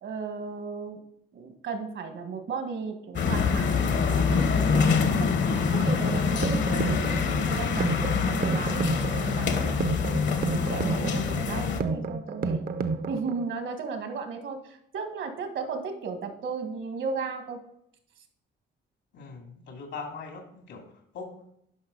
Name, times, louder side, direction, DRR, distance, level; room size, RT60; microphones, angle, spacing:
voice 1, 0.0-1.0 1.3-4.9 5.2-5.3 5.7-7.1 7.5-10.0 10.5-12.7 13.1-17.6, right 5 dB, 70° right, 5 dB, 1.7 m, -35 dB
sound 1, 3.1-11.8, left 5 dB, 65° left, 1.1 m, -25 dB
sound 2, 5.6-13.5, right 4 dB, 50° right, 0.7 m, -31 dB
voice 2, 19.1-21.5, left 4 dB, 85° left, 2 dB, 2.6 m, -41 dB
11.5 x 5.4 x 4.0 m, 0.73 s
cardioid pair, 90°, 20 cm